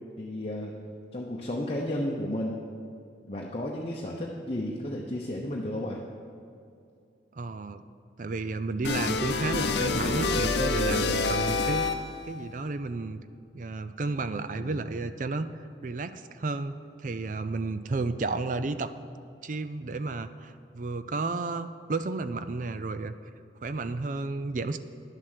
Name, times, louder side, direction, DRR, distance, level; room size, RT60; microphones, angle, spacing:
voice 1, 0.2-0.8 1.1-2.7 3.3-6.0 14.6-14.8, left 1 dB, 30° left, -2 dB, 0.8 m, -33 dB
voice 2, 7.3-7.8 8.2-11.9 12.2-13.2 13.5-18.9 19.4-23.1 23.6-24.8, right 3 dB, 45° right, 11 dB, 0.4 m, -32 dB
sound 1, 8.8-12.3, left 3 dB, 60° left, 0.7 m, -27 dB
11.0 x 7.5 x 6.6 m, 2.5 s
head